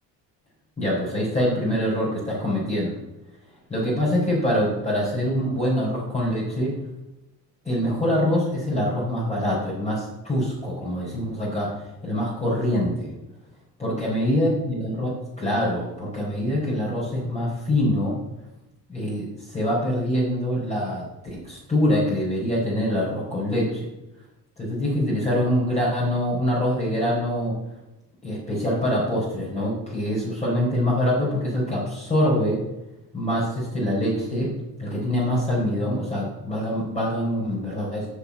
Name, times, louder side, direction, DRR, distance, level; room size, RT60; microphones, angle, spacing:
voice 1, 0.8-3.0 3.7-6.7 7.6-11.7 12.0-13.1 13.8-18.2 18.9-21.1 21.3-23.8 24.6-27.5 28.2-32.6 33.1-34.5 34.8-38.1, equal, 15° left, -6 dB, 4.4 m, -24 dB
8.2 x 5.8 x 8.0 m, 0.95 s
cardioid pair, 115°, 42 cm